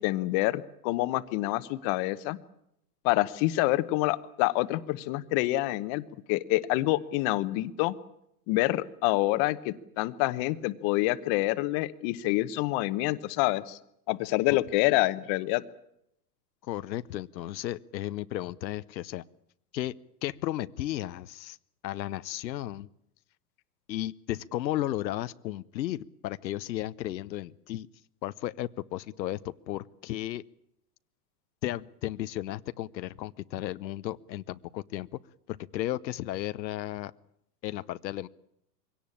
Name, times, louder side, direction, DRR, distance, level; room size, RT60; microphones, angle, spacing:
voice 1, 0.0-2.4 3.0-6.0 6.3-7.9 8.5-13.8 14.1-15.6, left 18 dB, 35° left, 15 dB, 1.0 m, -27 dB
voice 2, 16.6-19.2 19.7-19.9 20.2-21.6 21.8-22.9 23.9-27.9 28.2-30.4 31.6-35.1 35.5-37.1 37.6-38.3, left 14 dB, 90° left, 14 dB, 0.9 m, -34 dB
22.5 x 17.5 x 8.6 m, 0.78 s
supercardioid pair, 145°, 50 cm